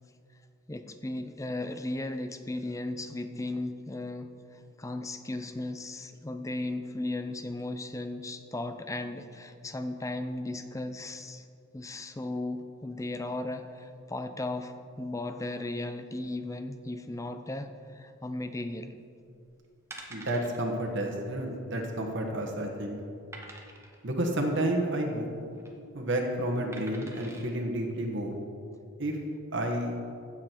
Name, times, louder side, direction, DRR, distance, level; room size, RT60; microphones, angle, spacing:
voice 1, 0.7-11.5 11.7-18.9, left 2 dB, 15° left, 8 dB, 0.5 m, -36 dB
sound 1, 19.2-19.4 19.9-20.6 21.0-21.1 21.4-21.5 22.1-22.5 23.3-24.0 25.3-25.7 26.7-27.5 28.1-28.2, right 2 dB, 10° right, 1.1 m, -47 dB
voice 2, 20.1-23.0 24.0-25.2 25.9-28.4 29.0-29.2 29.5-29.9, right 1 dB, 55° right, 1 dB, 1.3 m, -30 dB
15.5 x 7.5 x 4.5 m, 2.4 s
head